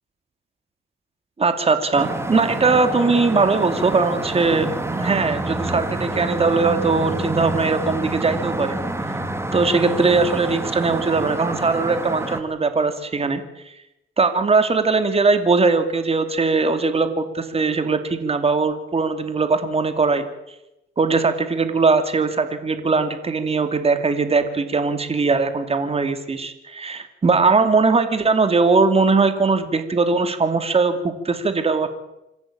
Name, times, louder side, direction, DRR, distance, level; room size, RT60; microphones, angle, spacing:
voice 1, 1.4-8.8 9.5-13.4 14.2-20.3 21.0-31.9, right 4 dB, 30° right, 9 dB, 2.7 m, -20 dB
sound 1, 2.0-12.4, right 1 dB, 15° right, 2.8 m, -27 dB
26.5 x 14.0 x 8.8 m, 0.91 s
cardioid pair, 90°, 20 cm